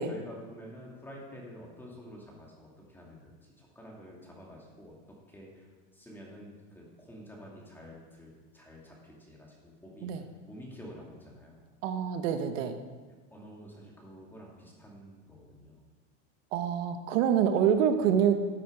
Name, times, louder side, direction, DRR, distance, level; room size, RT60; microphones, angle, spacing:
voice 1, 0.0-4.9 5.3-5.7 5.9-11.6 13.3-15.8 18.0-18.2, equal, 5° left, -3 dB, 2.5 m, -49 dB
voice 2, 11.8-12.8 16.5-18.5, right 8 dB, 90° right, 7 dB, 1.2 m, -26 dB
13.0 x 7.8 x 4.7 m, 1.3 s
supercardioid pair, 145°, 37 cm